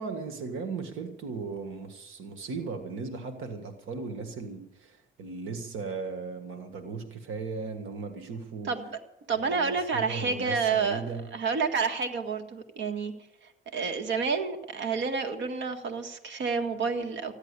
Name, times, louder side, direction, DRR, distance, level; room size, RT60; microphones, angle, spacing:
voice 1, 0.0-8.7 9.4-11.3, right 4 dB, 85° right, 7 dB, 1.7 m, -37 dB
voice 2, 8.7-9.0 9.3-13.1 13.7-17.4, right 5 dB, 65° right, 6 dB, 1.8 m, -29 dB
15.0 x 10.5 x 8.3 m, 0.87 s
cardioid pair, 90°, 20 cm